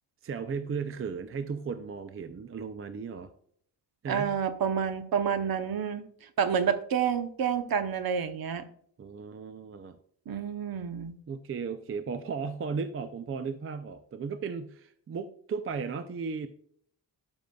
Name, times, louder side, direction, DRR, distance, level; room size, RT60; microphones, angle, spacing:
voice 1, 0.2-3.3 4.0-4.4 9.0-10.0 11.3-16.5, right 5 dB, 30° right, 10 dB, 0.4 m, -35 dB
voice 2, 4.1-8.6 10.3-11.2, right 7 dB, 55° right, 10 dB, 0.8 m, -29 dB
12.5 x 5.3 x 2.3 m, 0.63 s
wide cardioid pair, 175°, 44 cm